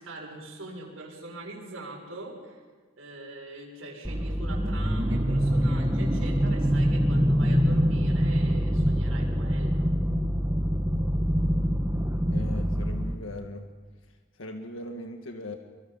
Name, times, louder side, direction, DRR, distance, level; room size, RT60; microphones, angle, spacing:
voice 1, 0.0-2.6 3.0-9.9, right 2 dB, 85° right, -1 dB, 7.0 m, -42 dB
sound 1, 4.0-13.2, equal, 15° right, 1.5 m, -25 dB
voice 2, 12.3-13.7 14.4-15.6, left 1 dB, 75° left, 4 dB, 1.6 m, -38 dB
27.0 x 23.5 x 5.5 m, 1.4 s
head